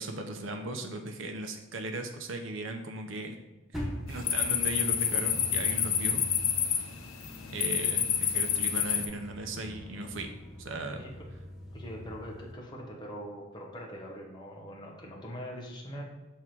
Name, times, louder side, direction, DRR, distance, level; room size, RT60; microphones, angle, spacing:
voice 1, 0.0-3.4 4.1-6.2 7.5-10.3 10.6-11.0, right 2 dB, 70° right, 5 dB, 0.7 m, -37 dB
sound 1, 3.7-12.5, equal, ahead, 1.1 m, -43 dB
sound 2, 4.1-9.1, left 8 dB, 85° left, 0.7 m, -28 dB
voice 2, 10.9-11.3 11.7-16.0, equal, 20° left, -2 dB, 1.2 m, -42 dB
6.5 x 3.5 x 4.5 m, 1.1 s
head